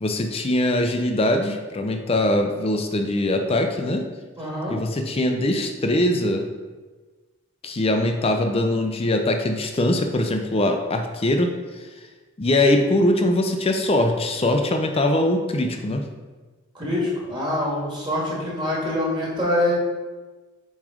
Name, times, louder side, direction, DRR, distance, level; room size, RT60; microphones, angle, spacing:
voice 1, 0.0-4.1 4.7-6.5 7.6-12.1 12.4-16.1, left 1 dB, 30° left, 5 dB, 0.5 m, -22 dB
voice 2, 4.4-4.8 12.7-12.9 16.7-19.7, left 1 dB, 20° right, -5 dB, 1.8 m, -25 dB
7.1 x 3.2 x 4.9 m, 1.3 s
head